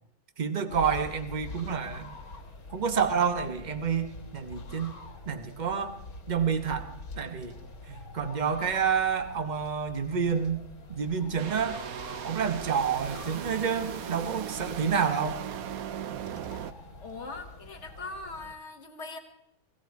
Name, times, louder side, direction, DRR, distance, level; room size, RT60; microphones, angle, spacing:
voice 1, 0.4-2.1 2.7-5.0 5.3-6.0 6.3-7.6 7.9-11.8 12.2-15.4, right 6 dB, 35° right, 9 dB, 1.0 m, -29 dB
sound 1, 0.7-18.5, left 3 dB, 70° left, 2.4 m, -45 dB
sound 2, 11.4-16.7, right 10 dB, 70° right, 1.2 m, -38 dB
voice 2, 17.0-19.2, left 3 dB, 50° left, 5 dB, 1.6 m, -41 dB
18.0 x 15.0 x 4.6 m, 0.78 s
omnidirectional pair, 1.6 m